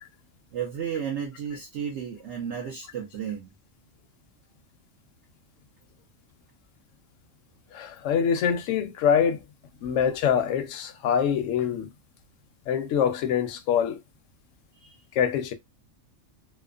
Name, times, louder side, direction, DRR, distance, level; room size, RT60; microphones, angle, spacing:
voice 1, 0.5-3.5 14.8-15.0, right 8 dB, 65° right, 1.0 m, -33 dB
voice 2, 7.7-9.4 9.8-11.9 12.7-14.0 15.2-15.5, left 8 dB, 80° left, 0.9 m, -24 dB
2.9 x 2.1 x 2.3 m
omnidirectional pair, 1.3 m